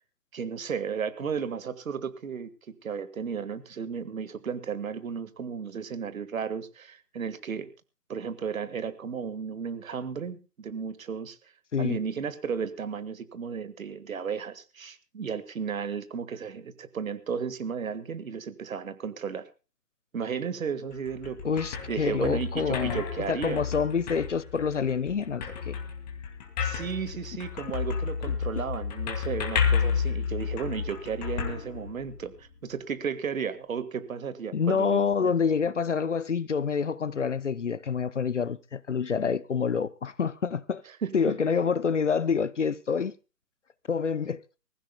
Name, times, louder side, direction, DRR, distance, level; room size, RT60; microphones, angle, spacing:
voice 1, 0.3-2.5 2.8-7.7 8.1-11.4 11.8-19.4 20.1-23.6 26.6-35.3 40.9-41.4, right 6 dB, 55° right, 1.8 m, -34 dB
sound 1, 20.9-32.4, left 6 dB, 25° left, 2.5 m, -31 dB
voice 2, 21.4-23.0 23.3-25.8 34.5-40.8 41.1-43.1 43.9-44.4, left 6 dB, 45° left, 0.7 m, -27 dB
25.0 x 15.5 x 2.3 m
figure-of-eight pair, 150°, 50 cm